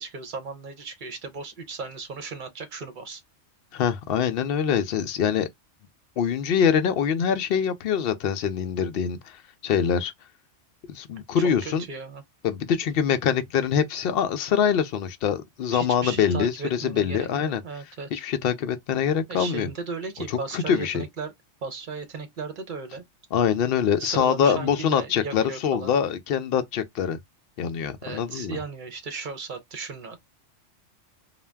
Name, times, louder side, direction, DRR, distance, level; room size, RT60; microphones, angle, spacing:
voice 1, 0.0-3.2 11.4-12.2 15.7-18.2 19.3-21.3 21.6-23.0 24.0-25.9 28.0-30.3, right 4 dB, 50° right, 0.7 m, -36 dB
voice 2, 3.7-5.5 6.2-9.4 9.6-10.1 10.9-11.8 12.4-17.6 18.1-19.7 20.3-21.0 23.3-27.2 27.6-28.6, left 7 dB, 60° left, 0.7 m, -24 dB
2.5 x 2.2 x 3.3 m
omnidirectional pair, 1.2 m